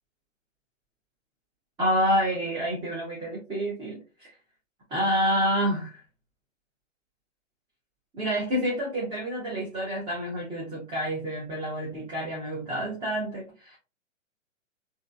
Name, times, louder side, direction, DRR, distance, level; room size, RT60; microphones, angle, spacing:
voice 1, 1.8-4.3 4.9-6.0 8.1-13.8, equal, 15° right, -5 dB, 0.9 m, -28 dB
3.7 x 2.7 x 2.3 m, 0.32 s
figure-of-eight pair, 115°, 38 cm